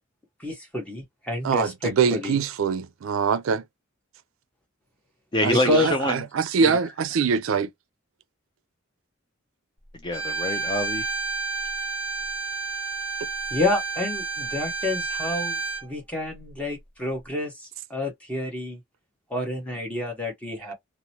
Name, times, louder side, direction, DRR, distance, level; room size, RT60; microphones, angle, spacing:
voice 1, 0.4-2.4 5.5-5.9 13.5-18.8 19.3-20.7, left 2 dB, 5° left, 1.0 m, -29 dB
voice 2, 1.4-3.6 5.4-7.7, right 6 dB, 75° right, 0.4 m, -23 dB
voice 3, 5.3-6.2 6.6-6.8 10.0-11.1, left 1 dB, 20° left, 0.4 m, -26 dB
Bowed string instrument, 10.1-15.9, right 4 dB, 25° right, 1.2 m, -30 dB
2.9 x 2.0 x 2.7 m
head